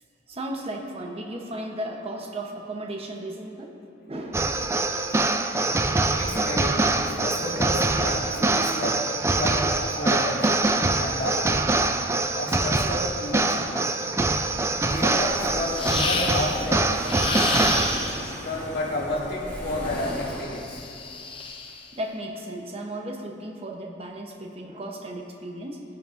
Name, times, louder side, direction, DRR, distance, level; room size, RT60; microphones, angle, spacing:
voice 1, 0.3-3.8 4.1-4.7 17.2-17.8 18.1-18.2 21.9-25.8, right 1 dB, 30° right, 1 dB, 0.8 m, -35 dB
sound 1, 4.3-18.4, right 2 dB, 15° right, 0.3 m, -24 dB
voice 2, 6.1-9.0 9.4-10.5 10.9-11.5 12.3-13.8 14.8-16.9 18.2-20.8, left 1 dB, 55° left, -5 dB, 2.0 m, -31 dB
sound 2, 14.9-20.4, equal, 10° left, 1.9 m, -37 dB
sound 3, 15.7-16.6 17.0-18.3 19.9-21.8, left 3 dB, 25° left, 0.8 m, -30 dB
17.5 x 10.5 x 2.6 m, 2.8 s
head